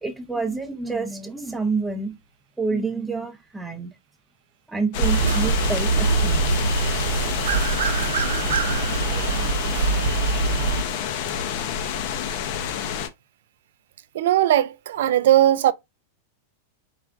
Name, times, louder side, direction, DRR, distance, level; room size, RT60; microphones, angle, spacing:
voice 1, 0.0-2.2 2.6-3.9 4.7-6.4, right 4 dB, 5° right, 0.6 m, -28 dB
sound 1, 4.9-13.1, left 7 dB, 40° left, 0.6 m, -28 dB
sound 2, 5.0-10.8, right 5 dB, 90° right, 0.7 m, -23 dB
voice 2, 14.1-15.7, right 12 dB, 60° right, 0.4 m, -18 dB
4.8 x 2.5 x 3.4 m
supercardioid pair, 180°, 0 cm